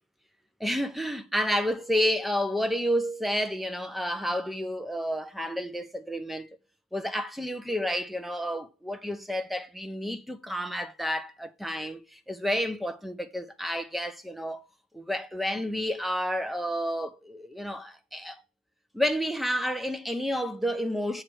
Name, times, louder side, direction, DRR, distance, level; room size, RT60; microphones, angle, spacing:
voice 1, 0.6-6.5 6.9-14.6 14.9-18.4 18.9-21.2, equal, ahead, 0.5 m, -30 dB
7.6 x 3.2 x 6.0 m
head